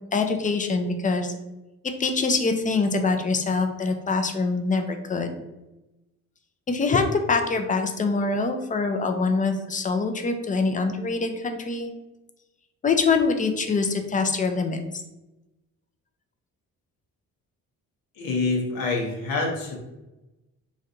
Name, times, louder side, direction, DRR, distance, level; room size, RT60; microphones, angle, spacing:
voice 1, 0.1-1.4 2.0-5.3 6.7-11.9 12.8-14.8, left 4 dB, 20° left, 6 dB, 0.5 m, -24 dB
voice 2, 18.2-19.8, left 3 dB, 75° left, 0 dB, 1.0 m, -26 dB
3.1 x 2.5 x 2.6 m, 1.0 s
supercardioid pair, 65°, 35 cm